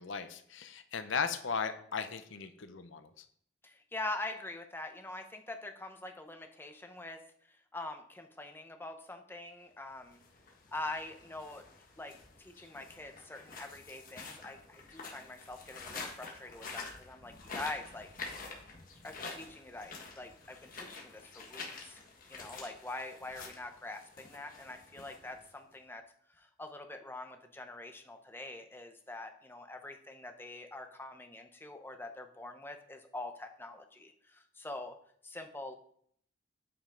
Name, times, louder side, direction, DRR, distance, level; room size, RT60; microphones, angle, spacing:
voice 1, 0.0-3.2, left 6 dB, 70° left, 10 dB, 0.6 m, -37 dB
voice 2, 3.6-7.2 7.5-10.2 10.7-11.6 12.0-12.1 12.4-18.1 19.0-22.0 22.3-26.0 26.4-35.0 35.2-35.8, left 2 dB, 10° left, 5 dB, 0.7 m, -44 dB
sound 1, 10.0-25.7, left 4 dB, 45° left, 1.3 m, -48 dB
8.6 x 5.3 x 3.8 m, 0.63 s
head